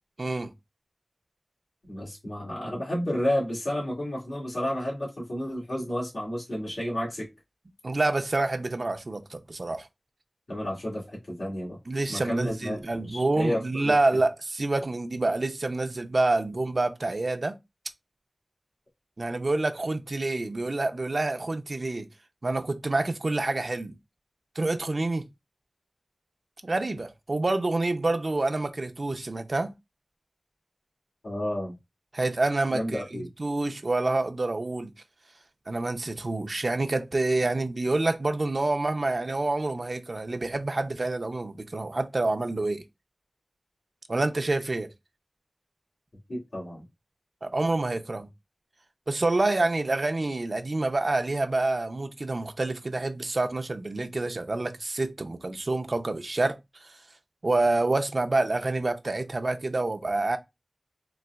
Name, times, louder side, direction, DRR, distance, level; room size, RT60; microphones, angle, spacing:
voice 1, 0.2-0.5 7.8-9.9 11.9-17.6 19.2-22.1 22.4-24.0 24.6-25.2 26.6-29.7 32.1-34.9 35.7-42.8 44.1-44.9 47.4-48.3 49.1-56.9 57.4-60.4, right 2 dB, 60° right, 0.4 m, -27 dB
voice 2, 1.9-7.3 10.5-11.8 12.1-13.9 31.2-31.7 32.7-33.3 46.3-46.8, equal, 85° left, 1.7 m, -31 dB
3.9 x 2.4 x 2.3 m
wide cardioid pair, 45°, 0 cm